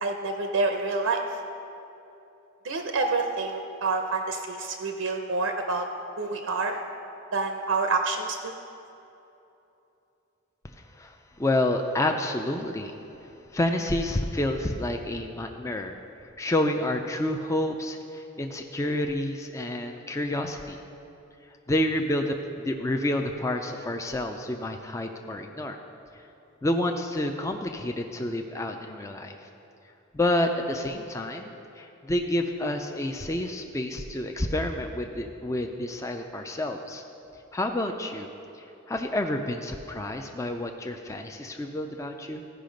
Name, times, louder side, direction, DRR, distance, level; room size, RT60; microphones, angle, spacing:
voice 1, 0.0-1.4 2.6-5.8 6.2-6.8 7.3-8.5, right 3 dB, 80° right, 4 dB, 0.6 m, -28 dB
voice 2, 10.9-13.0 13.2-16.0 16.4-20.8 21.7-25.8 26.1-26.2 26.6-29.5 30.1-37.0 37.5-38.3 38.6-42.4, left 1 dB, 15° left, 4 dB, 0.4 m, -29 dB
15.0 x 5.7 x 5.1 m, 2.9 s
head